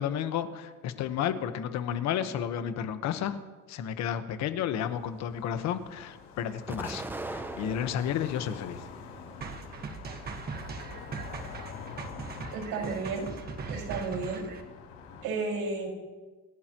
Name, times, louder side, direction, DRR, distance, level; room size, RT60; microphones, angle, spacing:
voice 1, 0.0-3.4 3.7-8.8, left 9 dB, 55° left, 9 dB, 1.3 m, -32 dB
sound 1, 4.8-15.3, left 6 dB, 80° left, 4.9 m, -46 dB
Explosion, 6.7-8.3 8.9-9.7, right 2 dB, 5° right, 0.5 m, -40 dB
sound 2, 9.4-14.6, right 4 dB, 30° right, 1.5 m, -40 dB
voice 2, 12.5-13.3 13.7-14.4 15.2-15.9, right 4 dB, 85° right, 0 dB, 5.5 m, -32 dB
27.0 x 15.5 x 3.1 m, 1.3 s
cardioid pair, 160°, 32 cm